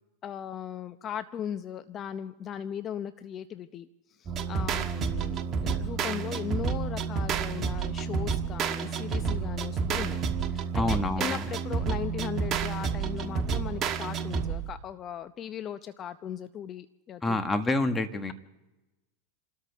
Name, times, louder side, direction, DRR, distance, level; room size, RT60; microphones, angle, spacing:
voice 1, 0.2-3.9 4.2-10.2 10.5-17.4, left 9 dB, 35° left, 11 dB, 0.7 m, -38 dB
sound 1, 4.3-14.8, right 6 dB, 35° right, 1.4 m, -30 dB
voice 2, 10.7-11.5 17.2-18.3, left 2 dB, 15° left, 7 dB, 1.5 m, -28 dB
29.0 x 13.5 x 3.5 m, 1.0 s
hypercardioid pair, 115°, 0 cm